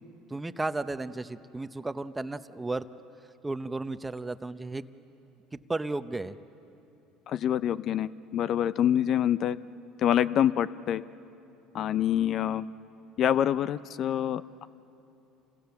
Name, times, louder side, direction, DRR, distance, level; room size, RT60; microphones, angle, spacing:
voice 1, 0.3-2.9 3.4-4.9 5.7-6.4, right 2 dB, 15° right, 11 dB, 0.8 m, -33 dB
voice 2, 7.3-9.6 10.0-11.0 11.7-12.7 13.2-14.7, left 10 dB, 50° left, 16 dB, 0.5 m, -26 dB
28.5 x 22.5 x 7.1 m, 2.9 s
supercardioid pair, 100°, 0 cm